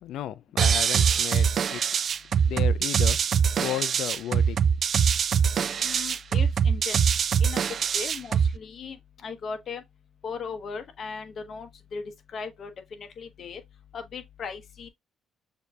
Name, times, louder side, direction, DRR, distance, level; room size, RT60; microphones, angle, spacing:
voice 1, 0.0-1.8 2.4-3.2 3.6-4.6, left 12 dB, 85° left, 0.3 m, -33 dB
sound 1, 0.6-8.6, right 7 dB, 55° right, 0.3 m, -23 dB
voice 2, 5.8-7.1 7.4-7.6 7.9-9.8 10.2-12.0 12.3-13.6 13.9-14.9, left 5 dB, 55° left, 1.0 m, -38 dB
6.5 x 2.7 x 2.2 m
cardioid pair, 90°, 0 cm